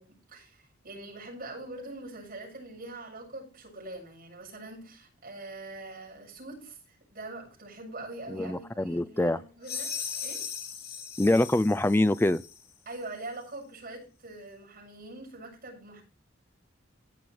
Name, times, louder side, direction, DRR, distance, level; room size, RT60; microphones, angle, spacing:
voice 1, 0.0-9.9 10.2-10.4 12.9-16.0, right 2 dB, 45° right, 7.6 m, -43 dB
voice 2, 8.3-9.4 11.2-12.4, left 1 dB, 10° left, 0.5 m, -24 dB
sound 1, 9.6-12.6, left 7 dB, 55° left, 3.3 m, -38 dB
16.0 x 6.1 x 4.8 m
head